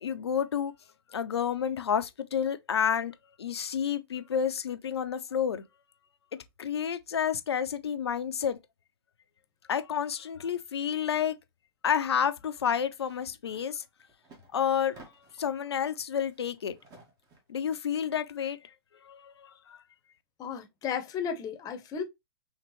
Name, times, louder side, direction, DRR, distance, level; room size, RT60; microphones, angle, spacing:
voice 1, 0.0-0.7 1.1-3.1 3.4-5.6 6.6-8.6 9.7-11.4 11.8-13.8 14.5-15.0 15.4-16.7 17.5-18.6 19.0-19.8, left 8 dB, 80° left, 0.7 m, -30 dB
sound 1, 13.4-13.7 14.0-15.5 16.0-17.6, right 2 dB, 25° right, 1.8 m, -55 dB
voice 2, 20.4-22.0, left 7 dB, 30° left, 1.0 m, -34 dB
4.5 x 3.3 x 3.1 m
hypercardioid pair, 115°, 13 cm